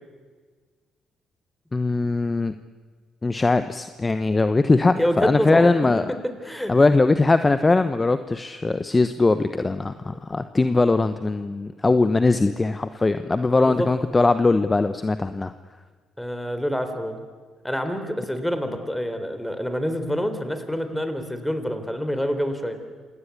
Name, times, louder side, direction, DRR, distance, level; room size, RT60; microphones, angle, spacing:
voice 1, 1.7-2.5 3.2-6.0 6.7-15.5, left 3 dB, 25° left, 11 dB, 1.0 m, -20 dB
voice 2, 4.9-5.7 6.2-6.8 13.5-13.9 16.2-17.2 17.6-22.8, equal, 5° left, 8 dB, 3.8 m, -27 dB
27.5 x 18.5 x 8.4 m, 1.5 s
hypercardioid pair, 50°, 0 cm